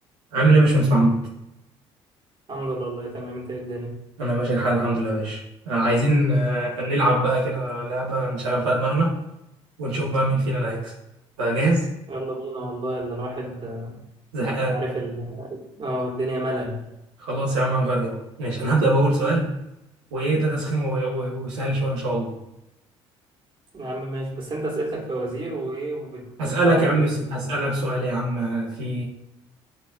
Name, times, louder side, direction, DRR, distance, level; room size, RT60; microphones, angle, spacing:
voice 1, 0.3-1.2 4.2-5.4 5.7-9.2 9.8-10.9 11.4-11.9 14.3-14.8 17.2-19.5 20.1-22.3 26.4-29.0, right 1 dB, 75° right, -4 dB, 1.3 m, -22 dB
voice 2, 2.5-4.0 12.1-14.0 14.5-16.9 23.7-27.2, right 1 dB, 35° right, -2 dB, 2.6 m, -30 dB
12.0 x 4.1 x 2.7 m, 0.88 s
figure-of-eight pair, 55°, 15 cm